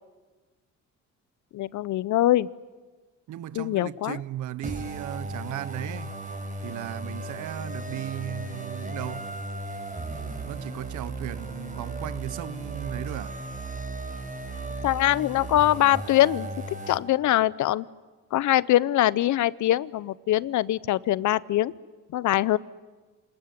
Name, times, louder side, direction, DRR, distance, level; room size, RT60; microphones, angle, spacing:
voice 1, 1.5-2.5 3.5-4.2 14.8-16.5 16.9-17.9 18.3-21.7 22.1-22.6, left 14 dB, 75° left, 0.8 m, -23 dB
voice 2, 3.3-6.2 6.6-9.4 10.4-13.4, right 13 dB, 75° right, 0.9 m, -36 dB
sound 1, 4.6-17.0, right 2 dB, 25° right, 5.3 m, -36 dB
27.0 x 19.5 x 9.5 m
cardioid pair, 90°, 30 cm